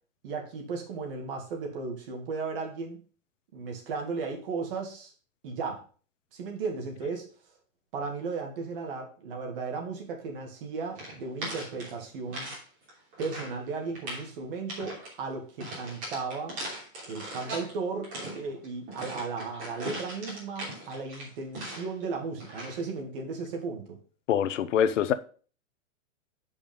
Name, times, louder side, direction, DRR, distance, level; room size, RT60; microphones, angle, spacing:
voice 1, 0.2-3.0 3.5-5.1 5.4-5.8 6.3-7.3 7.9-12.5 13.2-16.6 17.1-24.0, right 4 dB, 45° right, 2.0 m, -35 dB
sound 1, 10.9-12.6 12.9-13.6 13.9-14.3 14.7-15.1 15.6-17.7 18.0-22.0 22.4-22.8, right 1 dB, 20° right, 3.1 m, -39 dB
voice 2, 24.3-25.1, left 9 dB, 65° left, 0.9 m, -24 dB
7.1 x 5.4 x 5.3 m
supercardioid pair, 175°, 39 cm